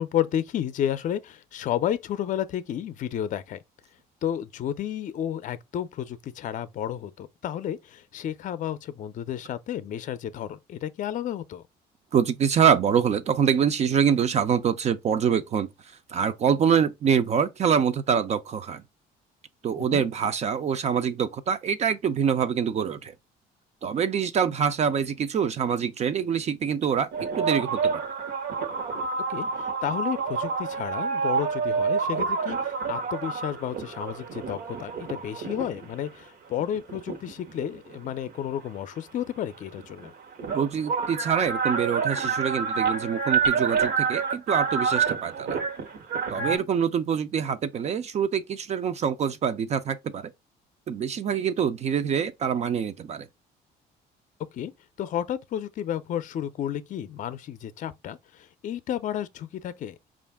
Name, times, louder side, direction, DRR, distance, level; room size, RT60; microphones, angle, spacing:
voice 1, 0.0-3.6 4.2-11.6 19.8-20.0 29.3-40.1 46.4-46.6 54.5-54.7 55.0-60.0, left 10 dB, 50° left, 0.5 m, -32 dB
voice 2, 12.1-18.8 19.6-23.1 23.8-27.1 27.4-28.0 40.5-45.6 46.3-50.3 50.9-53.3, right 7 dB, 40° right, 0.4 m, -25 dB
sound 1, 27.1-35.9 36.6-38.3 39.5-39.6 39.8-46.6, right 5 dB, 75° right, 1.0 m, -28 dB
5.1 x 2.5 x 3.4 m
cardioid pair, 110°, 17 cm